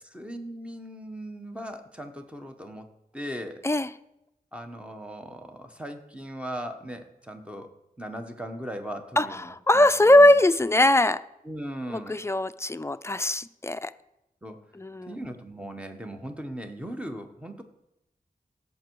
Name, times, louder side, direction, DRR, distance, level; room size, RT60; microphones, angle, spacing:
voice 1, 0.0-3.7 4.5-7.7 8.0-10.3 11.4-12.2 14.4-14.6 15.1-17.6, equal, 5° right, 5 dB, 1.2 m, -38 dB
voice 2, 9.2-11.2 11.9-13.9 14.8-15.1, left 1 dB, 15° left, 12 dB, 0.4 m, -21 dB
17.0 x 6.7 x 4.7 m, 0.88 s
wide cardioid pair, 90°, 15 cm